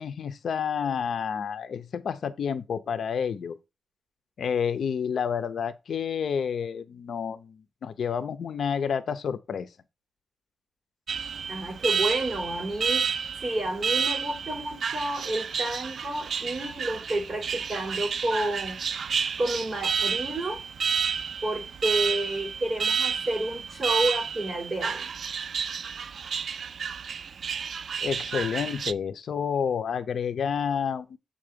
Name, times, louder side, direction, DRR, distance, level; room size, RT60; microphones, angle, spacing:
voice 1, 0.0-3.6 4.4-9.7 28.0-31.2, left 7 dB, 80° left, 0.6 m, -29 dB
Alarm, 11.1-28.9, right 6 dB, 65° right, 0.3 m, -30 dB
voice 2, 11.5-13.1 13.4-18.8 19.4-20.6 21.4-25.1, right 1 dB, 30° right, 5.2 m, -30 dB
7.5 x 3.8 x 5.1 m
wide cardioid pair, 155°, 0 cm